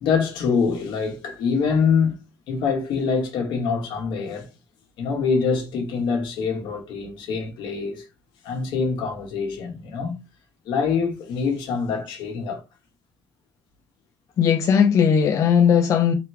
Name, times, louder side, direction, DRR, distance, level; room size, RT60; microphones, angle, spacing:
voice 1, 0.0-2.2 2.5-4.5 5.0-8.0 8.4-10.2 10.7-12.6, left 5 dB, 80° left, 1.3 m, -24 dB
voice 2, 14.4-16.1, left 7 dB, 45° left, 0.4 m, -18 dB
3.6 x 3.0 x 3.4 m
cardioid pair, 160°, 8 cm